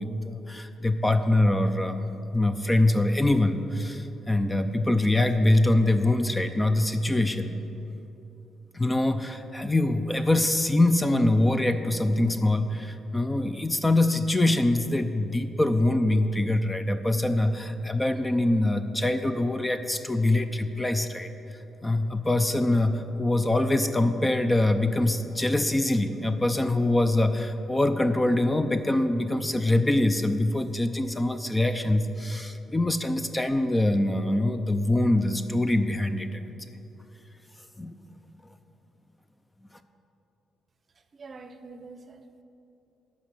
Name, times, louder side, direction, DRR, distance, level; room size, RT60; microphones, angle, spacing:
voice 1, 0.0-2.0 2.3-7.6 8.7-21.3 21.8-36.5 37.8-37.9, left 1 dB, 15° left, 9 dB, 0.5 m, -24 dB
voice 2, 41.0-42.4, right 3 dB, 40° right, 9 dB, 0.7 m, -46 dB
11.5 x 5.1 x 7.5 m, 3.0 s
cardioid pair, 90°, 0 cm